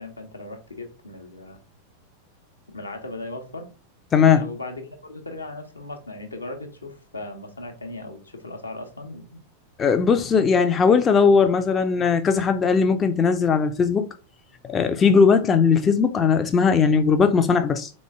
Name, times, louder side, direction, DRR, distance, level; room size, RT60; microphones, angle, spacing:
voice 1, 0.0-1.6 2.7-3.7 4.3-9.4, left 2 dB, 80° left, 0.8 m, -37 dB
voice 2, 4.1-4.5 9.8-14.1 14.7-17.9, left 5 dB, 20° left, 0.4 m, -18 dB
3.8 x 3.1 x 3.4 m
figure-of-eight pair, 90°, 0 cm